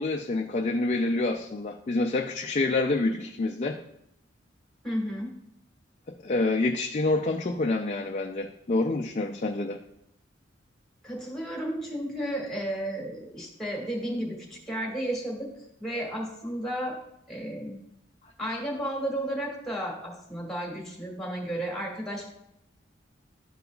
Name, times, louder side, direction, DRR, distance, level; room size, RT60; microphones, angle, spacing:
voice 1, 0.0-3.8 6.2-9.8, left 2 dB, 40° left, 2 dB, 0.4 m, -27 dB
voice 2, 4.8-5.3 11.0-15.5 15.8-17.0 17.3-17.8 18.4-22.3, right 1 dB, ahead, -2 dB, 1.7 m, -33 dB
12.0 x 5.3 x 2.3 m, 0.76 s
head